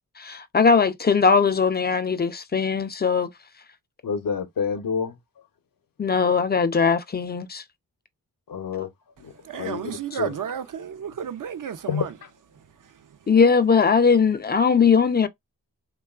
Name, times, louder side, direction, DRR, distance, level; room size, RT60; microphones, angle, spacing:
voice 1, 0.2-3.3 6.0-7.6 8.8-8.9 13.3-15.3, left 5 dB, 30° left, 0.4 m, -20 dB
voice 2, 4.0-5.2 8.5-8.9 9.2-9.8 10.2-10.3 11.9-12.1, left 6 dB, 70° left, 0.6 m, -28 dB
voice 3, 9.4-12.1 12.8-12.9, right 9 dB, 65° right, 0.5 m, -32 dB
3.0 x 2.3 x 2.3 m
cardioid pair, 65°, 35 cm